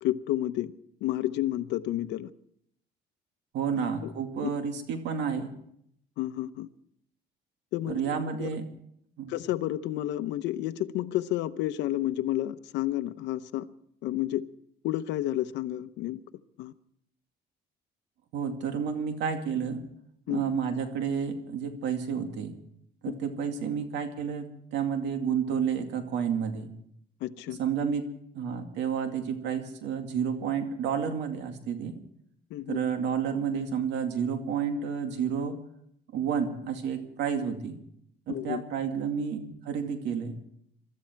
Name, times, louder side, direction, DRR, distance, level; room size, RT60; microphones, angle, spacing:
voice 1, 0.0-0.7 1.0-2.3 3.8-4.1 4.4-4.5 6.2-6.7 7.7-8.6 9.3-13.7 14.0-14.5 14.8-16.2 16.6-16.7 20.3-20.4 27.2-27.6 32.5-32.8 38.3-38.6, left 14 dB, 90° left, 0.8 m, -31 dB
voice 2, 3.5-5.5 7.9-8.6 9.2-9.3 18.3-19.8 20.3-22.5 23.0-26.7 27.6-28.1 28.3-32.0 32.7-35.6 36.1-37.8 38.3-40.4, right 7 dB, 85° right, 2.4 m, -30 dB
23.5 x 13.5 x 4.6 m
cardioid pair, 120°, 18 cm